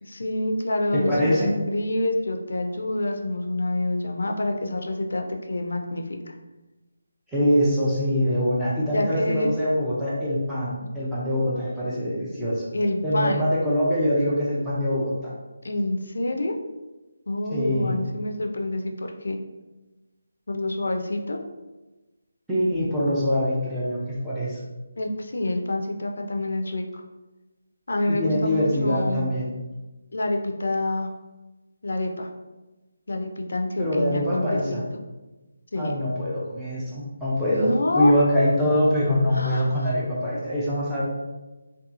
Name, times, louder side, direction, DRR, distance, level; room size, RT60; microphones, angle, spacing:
voice 1, 0.0-1.4 1.7-6.4 8.9-9.5 12.7-13.5 15.6-16.5 17.3-19.4 20.5-21.4 25.0-27.0 27.9-29.3 30.1-31.1 31.8-32.3 33.1-34.8 35.7-36.0 37.5-38.2 39.3-39.9, left 1 dB, 75° left, 3 dB, 0.4 m, -27 dB
voice 2, 0.9-1.5 7.3-12.7 13.0-15.3 17.5-17.9 22.5-24.6 28.1-29.5 33.8-34.8 35.8-41.0, equal, ahead, -10 dB, 0.4 m, -24 dB
2.8 x 2.2 x 2.4 m, 1.1 s
figure-of-eight pair, 175°, 0 cm